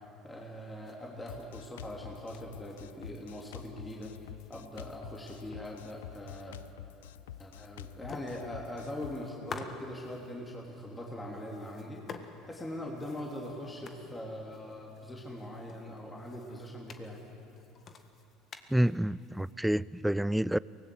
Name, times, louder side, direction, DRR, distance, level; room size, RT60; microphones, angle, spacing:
voice 1, 0.2-4.1 4.5-6.6 7.4-12.0 12.4-17.2, left 1 dB, 15° left, 3.1 m, -42 dB
sound 1, 0.8-3.5 3.8-6.5 6.8-6.9 7.3-7.7 8.0-10.4 11.3-19.5, left 5 dB, 45° left, 1.6 m, -50 dB
Drum kit, 1.3-9.2, left 12 dB, 85° left, 0.4 m, -48 dB
voice 2, 18.7-20.6, right 1 dB, 5° right, 0.4 m, -28 dB
24.0 x 18.5 x 8.0 m
hypercardioid pair, 75°, 0 cm